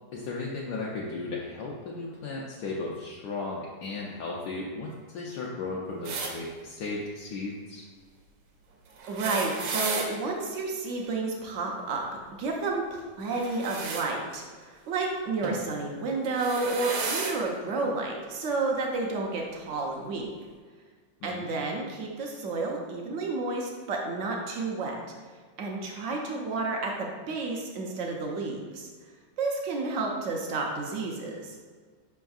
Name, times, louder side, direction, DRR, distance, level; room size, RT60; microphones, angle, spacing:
voice 1, 0.1-7.8 21.2-21.5, left 3 dB, 75° left, -3 dB, 1.1 m, -35 dB
sound 1, 6.0-6.3 9.0-10.1 13.3-14.1 15.4-15.6 16.2-17.4 18.4-18.5 19.7-19.8, right 4 dB, 80° right, 1.3 m, -33 dB
voice 2, 9.1-12.0 12.4-20.3 21.2-25.0 25.6-28.9 29.4-31.5, right 3 dB, 65° right, 0 dB, 0.7 m, -31 dB
5.5 x 3.5 x 2.3 m, 1.5 s
omnidirectional pair, 1.9 m